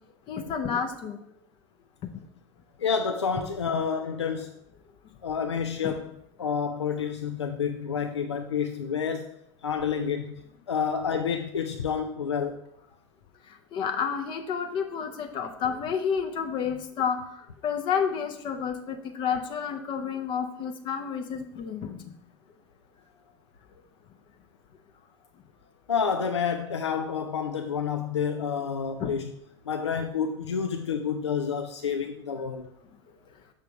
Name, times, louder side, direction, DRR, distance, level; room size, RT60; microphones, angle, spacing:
voice 1, 0.3-1.2 5.8-6.0 13.7-22.0 29.0-29.1, left 7 dB, 35° left, 0.6 m, -30 dB
voice 2, 2.8-4.5 5.2-6.1 6.4-9.3 9.6-10.4 10.7-12.6 25.9-29.3 29.7-32.7, left 6 dB, 80° left, 0.4 m, -29 dB
6.8 x 3.4 x 5.8 m
figure-of-eight pair, 80°, 14 cm